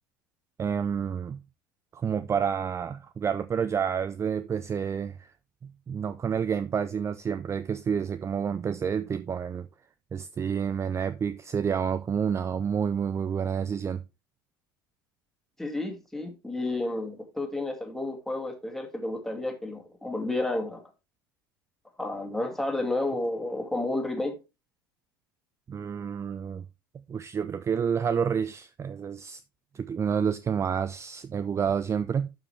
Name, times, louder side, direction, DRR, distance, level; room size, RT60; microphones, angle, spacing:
voice 1, 0.6-1.4 1.9-5.3 5.6-9.7 10.1-14.0 25.7-26.6 27.1-29.4 29.7-32.3, right 7 dB, 25° right, 0.5 m, -29 dB
voice 2, 15.6-20.8 22.0-24.4, left 2 dB, 5° left, 2.4 m, -31 dB
12.0 x 5.0 x 3.3 m
figure-of-eight pair, 70°, 11 cm